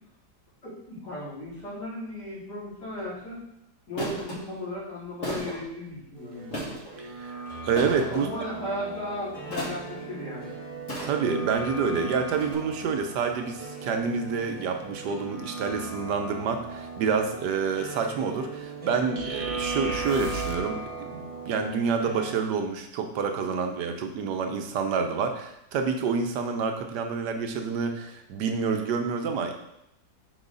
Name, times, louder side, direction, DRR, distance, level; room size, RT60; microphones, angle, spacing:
voice 1, 0.6-3.4 3.9-6.6 8.1-10.5, left 1 dB, 80° left, -8 dB, 3.6 m, -36 dB
sound 1, 2.8-3.0 4.0-4.4 5.2-5.6 6.5-6.9 7.8-8.2 9.5-9.9 10.9-11.4 12.4-12.5, equal, 50° left, 2.1 m, -34 dB
sound 2, 6.2-22.4, right 4 dB, 25° right, 0.8 m, -38 dB
voice 2, 7.2-8.3 11.0-29.5, right 5 dB, 85° right, 5 dB, 1.4 m, -28 dB
sound 3, 19.2-20.8, right 4 dB, 55° right, 0.9 m, -36 dB
6.2 x 5.6 x 3.9 m, 0.81 s
omnidirectional pair, 1.8 m